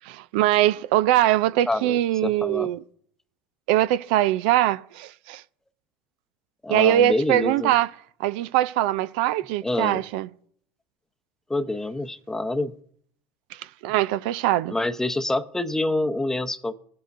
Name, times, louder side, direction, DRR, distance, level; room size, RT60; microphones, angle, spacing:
voice 1, 0.1-2.8 3.7-5.4 6.7-7.9 8.2-10.3 13.5-14.7, right 13 dB, 75° right, 0.4 m, -22 dB
voice 2, 1.7-2.7 6.6-7.7 9.6-10.0 11.5-12.7 14.7-16.7, left 2 dB, 10° left, 0.7 m, -26 dB
17.5 x 7.7 x 2.6 m
supercardioid pair, 100°, 5 cm